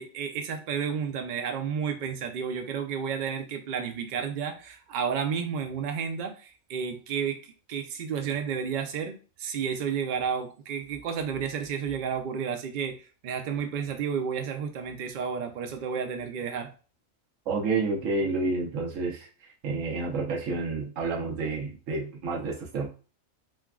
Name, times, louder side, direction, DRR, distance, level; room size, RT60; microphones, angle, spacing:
voice 1, 0.0-16.7, right 7 dB, 85° right, 5 dB, 0.4 m, -31 dB
voice 2, 17.5-22.9, right 3 dB, 70° right, -1 dB, 1.2 m, -30 dB
3.3 x 2.2 x 2.3 m, 0.35 s
omnidirectional pair, 1.4 m